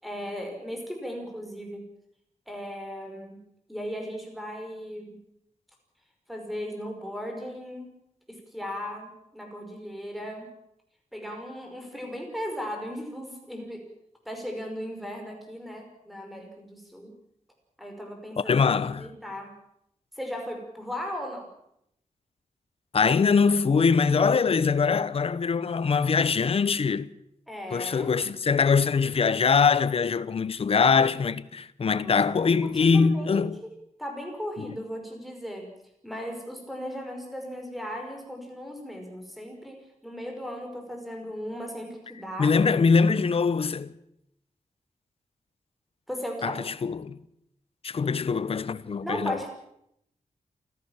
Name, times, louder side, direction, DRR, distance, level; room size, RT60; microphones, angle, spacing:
voice 1, 0.0-1.8 2.5-3.4 3.7-5.2 6.3-8.0 8.3-10.5 11.1-13.9 14.3-17.2 17.8-18.7 19.0-19.6 20.2-21.5 27.5-28.2 32.0-32.2 32.6-33.4 34.0-35.7 36.0-42.6 46.1-46.6 49.0-49.5, equal, ahead, 5.5 m, -37 dB
voice 2, 18.4-19.1 22.9-27.1 27.7-33.6 34.6-34.7 42.4-43.9 46.4-47.2 47.8-49.4, left 5 dB, 50° left, 0.9 m, -23 dB
28.0 x 15.5 x 7.3 m
wide cardioid pair, 155°, 13 cm